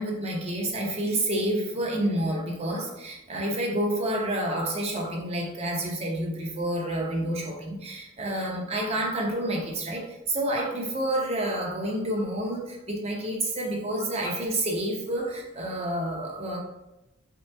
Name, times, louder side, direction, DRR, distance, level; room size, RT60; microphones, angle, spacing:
voice 1, 0.0-16.6, right 1 dB, 30° right, -1 dB, 0.8 m, -29 dB
3.8 x 2.9 x 3.3 m, 0.92 s
head